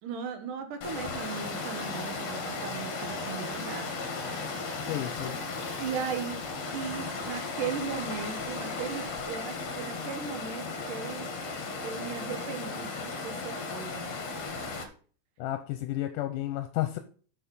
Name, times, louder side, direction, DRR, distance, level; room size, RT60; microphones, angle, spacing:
voice 1, 0.0-3.9 5.8-11.3 11.8-14.1, right 6 dB, 80° right, 7 dB, 2.9 m, -37 dB
Water, 0.8-14.8, left 3 dB, 60° left, 2.7 m, -36 dB
voice 2, 4.9-5.4 15.4-17.0, left 14 dB, 85° left, 8 dB, 2.3 m, -32 dB
7.9 x 7.0 x 5.5 m, 0.42 s
omnidirectional pair, 3.7 m